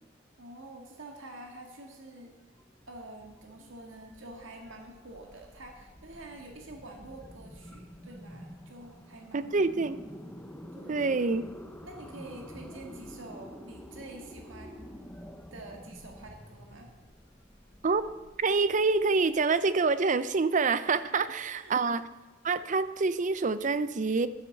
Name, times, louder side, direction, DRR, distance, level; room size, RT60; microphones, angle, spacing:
voice 1, 0.4-2.3 2.9-9.5 10.8-11.0 11.8-14.8 15.5-16.9 20.9-21.1 21.5-21.8, right 2 dB, 90° right, 2 dB, 1.8 m, -47 dB
sound 1, 2.4-20.2, equal, 10° left, 0.8 m, -49 dB
voice 2, 9.3-10.0 10.9-11.4 17.8-18.0 18.4-22.0 22.4-24.3, right 4 dB, 40° right, 14 dB, 0.5 m, -26 dB
12.0 x 8.0 x 6.5 m, 1.1 s
head